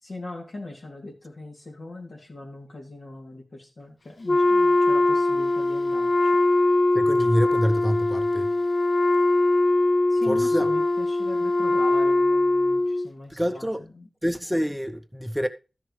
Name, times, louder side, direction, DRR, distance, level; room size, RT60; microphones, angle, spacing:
voice 1, 0.0-6.4 10.1-14.1, left 2 dB, 75° left, 2.9 m, -40 dB
Wind instrument woodwind instrument, 4.3-13.1, left 2 dB, 50° left, 0.4 m, -21 dB
voice 2, 6.9-8.5 10.3-10.7 13.4-13.8 14.2-15.5, equal, ahead, 0.6 m, -26 dB
13.0 x 6.9 x 3.2 m
wide cardioid pair, 80°, 0 cm